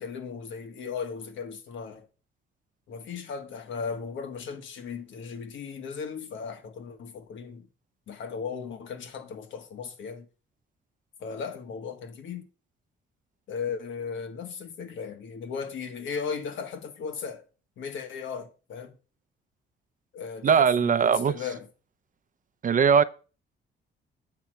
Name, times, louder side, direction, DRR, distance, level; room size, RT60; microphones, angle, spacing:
voice 1, 0.0-2.1 2.9-7.7 8.1-10.3 11.2-12.4 13.5-17.4 17.8-19.0 20.1-21.6, left 6 dB, 75° left, 1.4 m, -36 dB
voice 2, 20.4-21.4 22.6-23.0, right 7 dB, 40° right, 0.6 m, -20 dB
8.3 x 6.2 x 4.4 m
cardioid pair, 90°, 20 cm